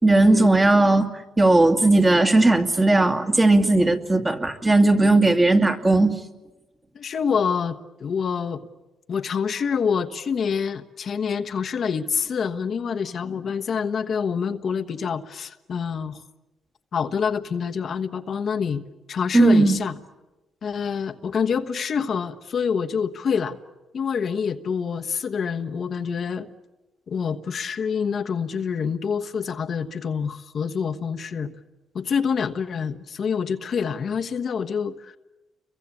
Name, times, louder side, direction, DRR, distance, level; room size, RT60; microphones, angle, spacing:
voice 1, 0.0-1.1 1.4-6.1 19.3-19.8, right 2 dB, 20° right, 5 dB, 2.4 m, -17 dB
voice 2, 6.9-8.6 9.1-16.2 16.9-18.8 19.1-20.0 20.6-23.6 23.9-26.5 27.1-31.5 31.9-35.2, left 6 dB, 55° left, 6 dB, 1.2 m, -26 dB
30.0 x 23.0 x 8.6 m, 1.1 s
cardioid pair, 90°, 0 cm